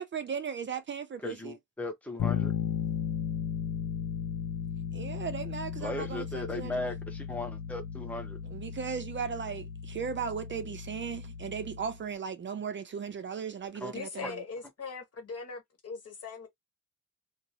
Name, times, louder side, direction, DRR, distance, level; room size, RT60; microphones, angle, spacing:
voice 1, 0.0-1.5 4.9-6.8 8.4-14.4, right 6 dB, 40° right, 0.4 m, -37 dB
voice 2, 1.2-2.5 5.8-8.4 13.8-13.9 14.2-14.3, left 2 dB, 5° left, 0.6 m, -37 dB
Bass guitar, 2.2-12.1, left 8 dB, 90° left, 0.5 m, -36 dB
voice 3, 13.9-16.5, left 4 dB, 55° left, 1.1 m, -40 dB
2.6 x 2.0 x 2.7 m
wide cardioid pair, 130°, 29 cm